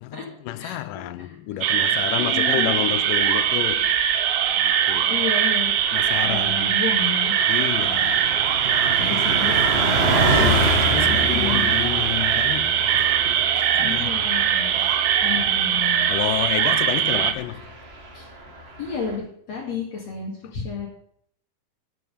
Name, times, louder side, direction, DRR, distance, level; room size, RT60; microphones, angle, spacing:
voice 1, 0.0-4.0 4.5-5.2 5.9-6.8 7.5-8.3 8.7-9.4 10.3-13.2 13.5-14.3 14.8-15.0 16.1-17.7, left 14 dB, 80° left, 2.2 m, -30 dB
sound 1, 1.6-17.3, right 9 dB, 75° right, 1.5 m, -21 dB
voice 2, 2.2-2.8 5.1-5.7 6.2-7.4 9.0-10.3 11.1-11.7 13.8-14.8 15.2-16.1 18.1-18.3 18.8-20.9, left 5 dB, 55° left, 3.1 m, -31 dB
Car passing by, 3.5-4.1 4.5-4.6 4.9-19.2, right 2 dB, 40° right, 0.8 m, -28 dB
13.0 x 7.7 x 5.6 m
omnidirectional pair, 3.9 m